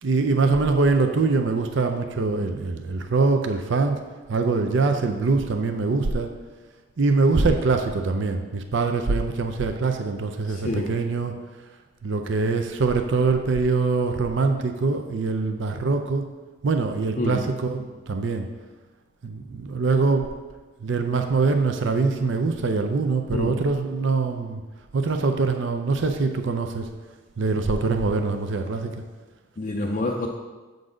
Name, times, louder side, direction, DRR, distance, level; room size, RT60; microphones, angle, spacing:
voice 1, 0.0-4.0 4.3-6.3 7.0-11.4 12.0-16.2 16.6-18.5 19.2-20.3 20.8-24.6 24.9-26.9 27.4-28.9, right 3 dB, 60° right, 5 dB, 0.5 m, -23 dB
voice 2, 10.5-10.9 17.2-17.5 23.3-23.6 29.6-30.3, left 2 dB, 40° left, 0 dB, 0.4 m, -27 dB
7.7 x 4.0 x 4.9 m, 1.3 s
head